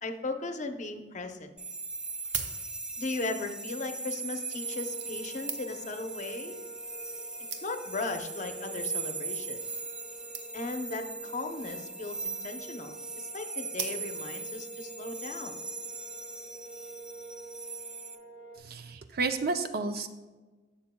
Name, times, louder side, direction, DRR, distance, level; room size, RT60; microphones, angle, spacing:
voice 1, 0.0-1.5 3.0-6.6 7.6-9.6 10.5-15.5, left 3 dB, 40° left, 6 dB, 0.7 m, -37 dB
sound 1, 1.6-18.2, right 3 dB, 5° right, 0.3 m, -39 dB
sound 2, 2.0-3.1 4.0-4.2 5.0-6.0 6.8-6.9 7.1-7.2 7.5-8.0 8.7-9.0 9.3-9.4 9.6-9.7 9.8-10.0 10.3-10.8 11.8-12.3 13.7-14.4 15.0-15.1, right 8 dB, 85° right, 0.8 m, -40 dB
sound 3, 4.5-18.6, right 4 dB, 40° right, 1.9 m, -47 dB
voice 2, 18.6-20.1, right 3 dB, 55° right, 8 dB, 0.6 m, -31 dB
11.5 x 7.5 x 2.2 m, 1.2 s
head